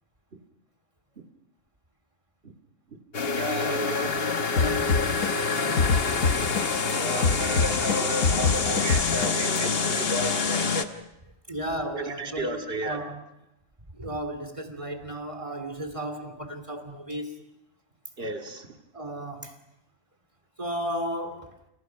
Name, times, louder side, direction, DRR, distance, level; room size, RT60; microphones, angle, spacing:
sound 1, 3.1-10.9, left 5 dB, 50° left, 1.5 m, -26 dB
voice 1, 3.4-4.1 6.9-10.9 11.9-13.0 18.2-18.7, right 1 dB, 50° right, 4 dB, 2.4 m, -32 dB
voice 2, 4.4-5.1 5.5-6.0 11.5-13.2 13.9-17.3 18.9-19.5 20.6-21.5, right 1 dB, 25° right, 7 dB, 2.7 m, -34 dB
sound 2, 4.6-6.9 7.2-9.6, left 4 dB, 85° left, 1.7 m, -24 dB
29.5 x 29.0 x 5.8 m, 0.85 s
omnidirectional pair, 1.3 m